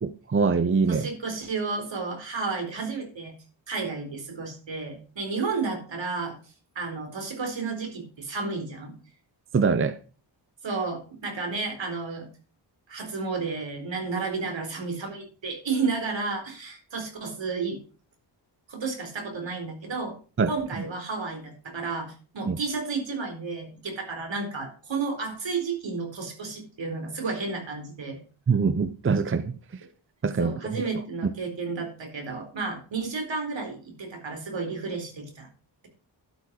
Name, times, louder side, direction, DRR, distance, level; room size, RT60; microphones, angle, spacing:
voice 1, 0.0-1.1 9.5-10.0 20.4-20.5 22.5-22.6 28.5-29.5 30.2-30.8, right 5 dB, 30° right, 0.6 m, -24 dB
voice 2, 0.9-3.3 3.7-6.4 6.7-8.9 10.6-12.3 12.9-17.8 18.7-20.1 20.5-28.2 30.4-35.5, right 4 dB, 70° right, 4.2 m, -32 dB
12.0 x 7.1 x 4.7 m
wide cardioid pair, 165°, 47 cm